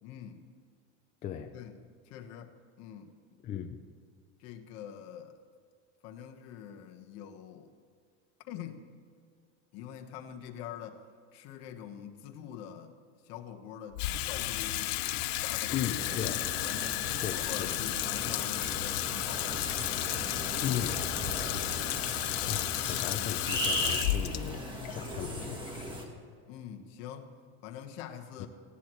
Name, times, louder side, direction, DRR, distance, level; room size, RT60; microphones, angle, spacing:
voice 1, 0.0-0.4 1.5-1.7 2.0-3.1 4.4-5.3 6.0-7.7 8.5-8.9 9.7-11.0 11.3-12.9 13.2-14.0 14.3-15.1 15.4-17.0 17.3-19.6 20.2-20.5 26.5-27.3 27.6-28.5, left 9 dB, 50° left, 5 dB, 1.3 m, -44 dB
voice 2, 1.2-1.5 3.4-3.8 15.7-16.4 17.2-17.8 20.6-21.0 22.5-24.6 24.9-25.7 28.4-28.5, left 10 dB, 25° left, 5 dB, 0.4 m, -36 dB
Water tap faucet / Sink (filling or washing), 13.9-26.3, left 15 dB, 75° left, 0.7 m, -33 dB
sound 1, 16.0-26.0, right 1 dB, 15° right, 1.4 m, -38 dB
18.5 x 16.5 x 3.1 m, 2.2 s
cardioid pair, 170°, 32 cm